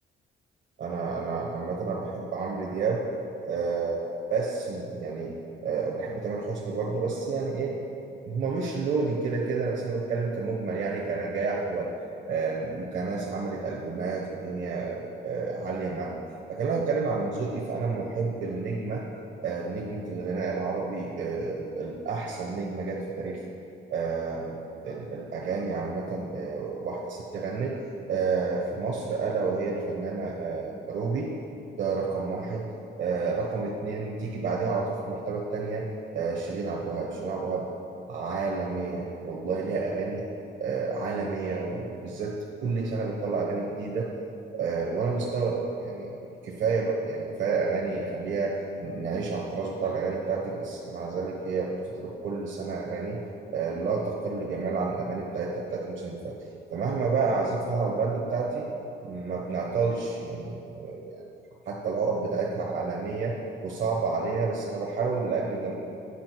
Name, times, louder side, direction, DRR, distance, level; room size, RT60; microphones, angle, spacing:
voice 1, 0.8-3.0 3.4-4.0 4.3-5.3 5.6-7.7 8.2-11.9 12.2-16.2 16.5-19.0 19.4-23.4 23.9-24.6 24.8-27.8 28.1-31.3 31.8-32.7 33.0-35.9 36.1-37.7 38.1-40.2 40.6-44.1 44.5-53.2 53.5-56.3 56.7-58.7 59.0-61.2 61.7-63.3 63.6-65.7, right 4 dB, 70° right, -3 dB, 1.1 m, -30 dB
9.9 x 5.6 x 4.6 m, 2.7 s
cardioid pair, 90°, 20 cm